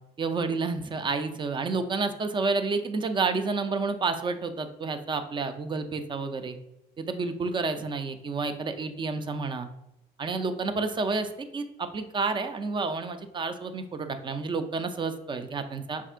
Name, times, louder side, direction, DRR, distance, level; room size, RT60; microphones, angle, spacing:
voice 1, 0.2-6.6 7.0-9.7 10.2-16.1, right 4 dB, 30° right, 8 dB, 0.5 m, -30 dB
5.5 x 3.6 x 2.4 m, 0.86 s
cardioid pair, 110°, 17 cm